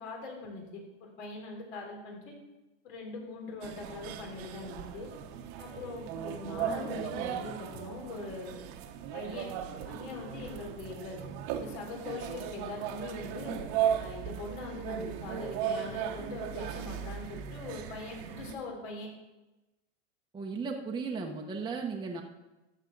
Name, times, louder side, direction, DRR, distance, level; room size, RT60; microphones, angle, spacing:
voice 1, 0.0-2.3 2.8-5.1 5.6-8.5 9.1-9.5 9.9-11.2 11.5-13.6 14.0-19.1, left 3 dB, 65° left, 0 dB, 3.5 m, -42 dB
sound 1, 3.6-18.5, right 9 dB, 55° right, 1.1 m, -37 dB
voice 2, 20.3-22.2, right 4 dB, 10° right, 1 dB, 0.9 m, -35 dB
13.5 x 7.4 x 3.9 m, 1.1 s
supercardioid pair, 125°, 37 cm